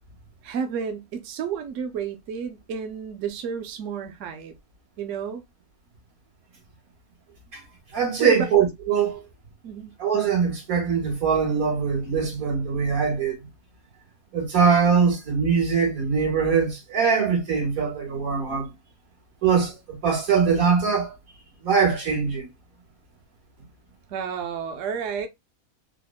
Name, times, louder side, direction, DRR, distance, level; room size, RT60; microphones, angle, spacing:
voice 1, 0.4-4.5 5.0-5.4 8.2-8.5 9.6-10.0 24.1-25.3, right 6 dB, 70° right, 0.9 m, -31 dB
voice 2, 7.9-9.2 10.0-13.4 14.3-18.7 19.4-21.1 21.6-22.5, right 6 dB, 90° right, 1.8 m, -22 dB
3.5 x 2.1 x 2.2 m
omnidirectional pair, 1.4 m